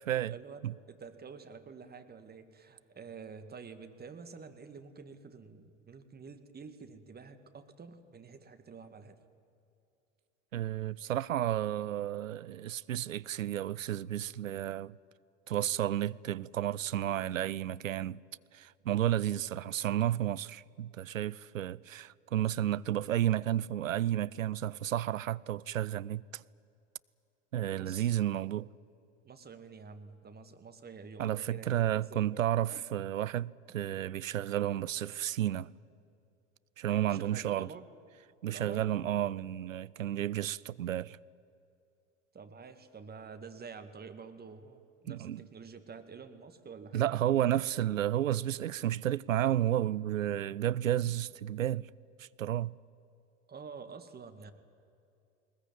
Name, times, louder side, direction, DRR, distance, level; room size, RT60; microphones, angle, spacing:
voice 1, 0.1-9.2 22.4-22.5 27.7-28.1 29.2-32.5 32.7-32.9 37.0-37.9 38.4-38.9 42.3-47.3 53.5-54.5, right 5 dB, 25° right, 2.0 m, -49 dB
voice 2, 10.5-15.0 15.5-18.2 18.5-26.4 27.5-28.7 31.2-35.7 36.8-37.7 38.4-41.2 45.1-45.4 46.9-51.9 52.2-52.8, right 12 dB, 90° right, 0.5 m, -32 dB
20.5 x 20.0 x 9.3 m
hypercardioid pair, 75°, 38 cm